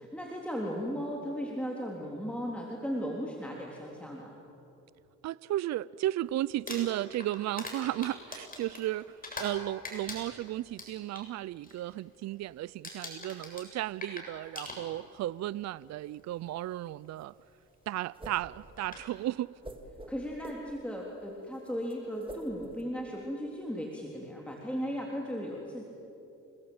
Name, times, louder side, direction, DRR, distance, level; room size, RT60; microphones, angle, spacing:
voice 1, 0.0-4.4 20.1-25.9, equal, 5° left, -2 dB, 3.5 m, -36 dB
voice 2, 5.2-17.3 17.9-19.5, right 14 dB, 65° right, 20 dB, 0.5 m, -34 dB
Crumpling crinkling, 6.5-9.6 9.8-11.3 11.6-11.9 12.2-12.5 12.8-15.2 16.2-16.3 18.3-18.4 18.8-19.1, left 2 dB, 30° left, 7.5 m, -42 dB
sound 1, 16.0-22.8, right 1 dB, 15° right, 2.9 m, -48 dB
29.0 x 20.0 x 8.8 m, 2.9 s
cardioid pair, 90°, 30 cm